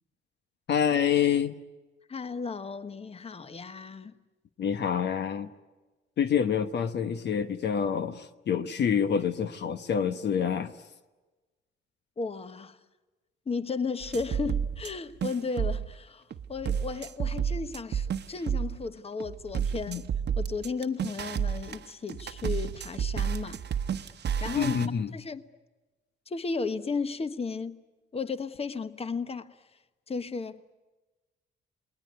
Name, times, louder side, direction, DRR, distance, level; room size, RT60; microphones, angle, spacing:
voice 1, 0.7-1.5 4.6-5.5 6.2-10.8 19.9-20.0 24.6-25.1, left 7 dB, 60° left, 1.1 m, -27 dB
voice 2, 2.1-4.1 12.2-12.8 13.5-20.1 20.4-23.6 24.0-24.1 24.4-24.8 25.1-25.5 26.3-27.8 28.1-29.6 30.1-30.6, left 4 dB, 30° left, 1.3 m, -34 dB
sound 1, 14.0-14.9 15.2-15.9 16.3-18.8 19.2-24.9, right 8 dB, 60° right, 1.1 m, -31 dB
28.5 x 20.5 x 9.5 m
cardioid pair, 90°, 20 cm